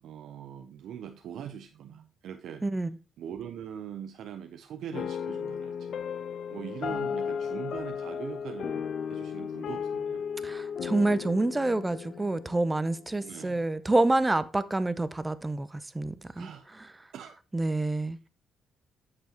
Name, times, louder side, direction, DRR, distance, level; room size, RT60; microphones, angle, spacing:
voice 1, 0.0-2.9 3.2-6.0 6.5-10.2 13.2-13.7 16.3-16.7 17.1-17.4 17.6-17.9, right 8 dB, 75° right, 0.6 m, -42 dB
sound 1, 4.9-13.5, left 7 dB, 60° left, 0.4 m, -35 dB
voice 2, 10.4-16.5 17.5-18.2, right 2 dB, 15° right, 0.6 m, -27 dB
8.2 x 6.9 x 2.9 m
cardioid pair, 90°, 0 cm